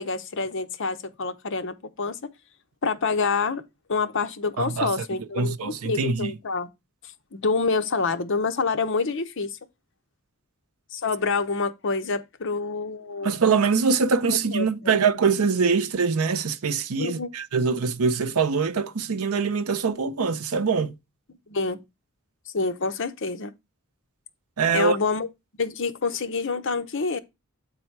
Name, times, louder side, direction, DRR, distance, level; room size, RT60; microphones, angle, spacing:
voice 1, 0.0-2.2 2.8-3.6 3.9-6.7 7.3-9.5 10.9-13.3 14.3-15.0 17.0-17.3 21.5-21.8 22.5-23.5 24.7-25.3 25.6-27.2, left 4 dB, 60° left, 0.8 m, -27 dB
voice 2, 4.6-4.9 5.4-6.3 13.2-20.9 24.6-25.0, right 5 dB, 80° right, 0.6 m, -23 dB
8.2 x 4.0 x 4.5 m
head